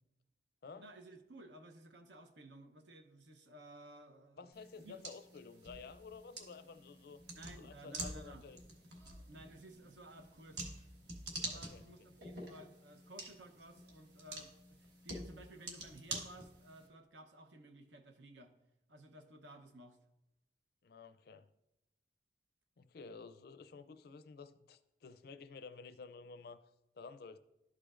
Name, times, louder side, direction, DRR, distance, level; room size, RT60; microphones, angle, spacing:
voice 1, 0.8-4.5 4.8-5.0 7.3-8.5 9.3-10.7 11.4-18.5 18.9-20.0, right 1 dB, 85° right, 0.8 m, -56 dB
voice 2, 4.4-7.2 7.6-8.6 11.5-11.8 20.8-21.5 22.8-26.6 27.0-27.4, left 4 dB, 60° left, 0.4 m, -52 dB
sound 1, 4.5-16.9, right 2 dB, 65° right, 1.4 m, -48 dB
12.0 x 5.0 x 2.5 m
head